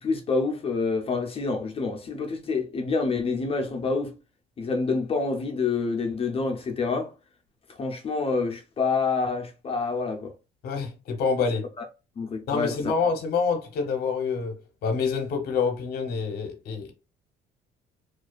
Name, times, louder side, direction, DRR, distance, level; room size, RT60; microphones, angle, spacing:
voice 1, 0.0-4.1 4.6-7.1 7.8-10.3 11.8-11.9 12.2-12.9, left 4 dB, 35° left, 0.5 m, -27 dB
voice 2, 10.6-11.7 12.5-14.6 14.8-16.9, left 5 dB, 65° left, 0.7 m, -27 dB
2.4 x 2.3 x 2.3 m
cardioid pair, 110°, 17 cm